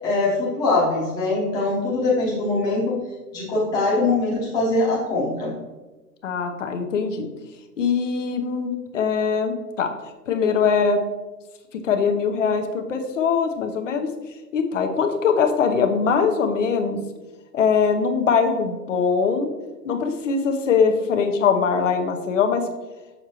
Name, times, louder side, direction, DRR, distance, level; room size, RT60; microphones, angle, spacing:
voice 1, 0.0-3.0 3.3-5.5, left 2 dB, 10° left, -6 dB, 1.0 m, -22 dB
voice 2, 6.2-7.3 7.8-9.9 10.3-11.0 11.7-14.1 14.5-17.0 17.5-19.5 19.8-22.7, left 6 dB, 50° left, 5 dB, 0.9 m, -22 dB
6.6 x 6.3 x 2.9 m, 1.2 s
hypercardioid pair, 155°, 49 cm